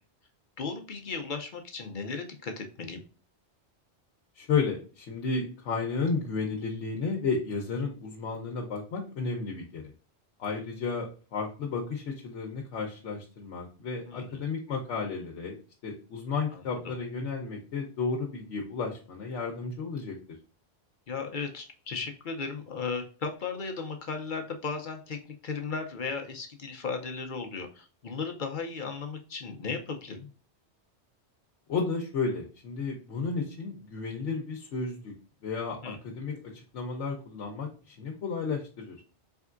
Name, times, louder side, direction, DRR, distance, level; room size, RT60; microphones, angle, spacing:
voice 1, 0.6-3.0 14.1-14.4 16.5-17.0 21.1-30.3 35.8-36.0, left 4 dB, 55° left, 5 dB, 0.7 m, -36 dB
voice 2, 4.3-9.8 10.4-15.5 15.8-20.2 31.7-35.1 35.4-39.0, left 4 dB, 80° left, 0 dB, 1.0 m, -33 dB
4.4 x 3.5 x 2.4 m, 0.38 s
omnidirectional pair, 1.2 m